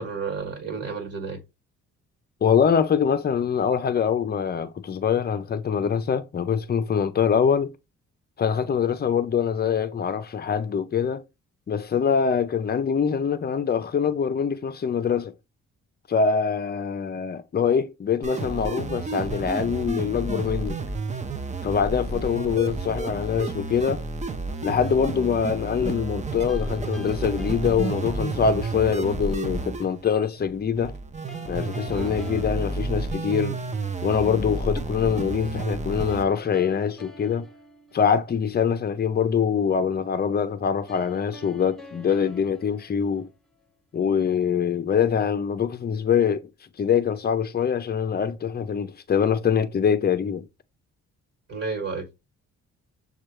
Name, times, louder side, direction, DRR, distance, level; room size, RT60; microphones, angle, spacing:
voice 1, 0.0-1.4 31.9-32.2 51.5-52.1, right 4 dB, 50° right, 1.5 m, -31 dB
voice 2, 2.4-7.7 8.4-11.2 11.7-15.3 16.1-20.8 21.6-24.0 24.6-30.9 31.5-33.6 34.0-37.5 37.9-43.3 43.9-46.5 46.8-50.5, left 7 dB, 30° left, 0.6 m, -24 dB
sound 1, 18.2-36.2, right 3 dB, 25° right, 0.6 m, -31 dB
sound 2, 26.5-28.6 31.3-33.7 36.1-38.6 40.9-43.7, left 4 dB, ahead, 1.0 m, -47 dB
6.5 x 2.4 x 3.0 m
cardioid pair, 90°, 30 cm